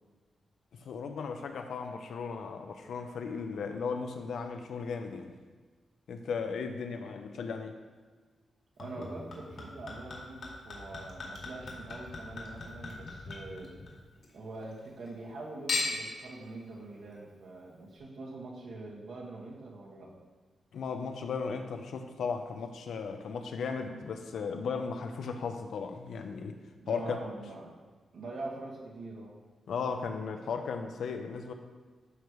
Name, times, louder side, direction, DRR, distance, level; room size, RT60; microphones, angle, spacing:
voice 1, 0.7-5.3 6.1-7.7 20.7-26.6 26.9-27.2 29.7-31.5, left 5 dB, 80° left, 5 dB, 0.8 m, -36 dB
Chink clink / Liquid, 8.8-14.3 14.6-15.3 15.7-16.2 16.9-17.0, left 3 dB, 60° left, 2.0 m, -39 dB
voice 2, 8.8-13.7 14.3-20.1 26.8-27.8 28.1-29.4, right 2 dB, 75° right, -3 dB, 1.8 m, -44 dB
12.5 x 5.3 x 3.2 m, 1.4 s
wide cardioid pair, 160°, 0 cm